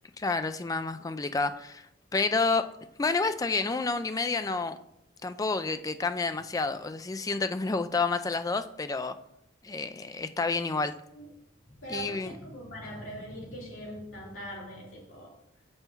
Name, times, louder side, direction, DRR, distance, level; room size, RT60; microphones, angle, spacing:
voice 1, 0.2-1.8 2.1-2.7 3.0-4.8 5.2-9.2 9.6-10.9 11.9-12.3, left 3 dB, 15° left, 10 dB, 0.3 m, -29 dB
voice 2, 11.6-15.4, equal, 75° left, -4 dB, 2.9 m, -41 dB
7.0 x 5.5 x 4.5 m, 0.78 s
head